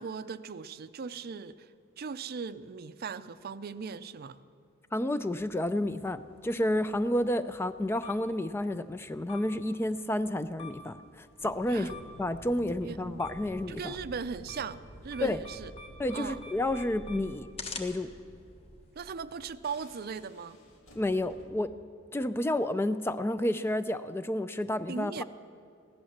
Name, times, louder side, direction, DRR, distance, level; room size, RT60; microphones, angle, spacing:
voice 1, 0.0-4.4 11.7-11.9 12.8-13.2 13.7-15.7 16.1-16.4 19.0-20.6 24.9-25.2, right 5 dB, 50° right, 14 dB, 0.4 m, -38 dB
voice 2, 4.9-14.0 15.2-15.4 16.0-17.5 17.8-18.1 21.0-21.7 22.1-25.2, left 1 dB, 10° left, 13 dB, 0.3 m, -30 dB
sound 1, 5.4-19.3, left 3 dB, 30° left, 1.2 m, -49 dB
sound 2, 11.4-21.5, equal, 80° left, 2.2 m, -51 dB
16.0 x 11.5 x 7.2 m, 2.4 s
head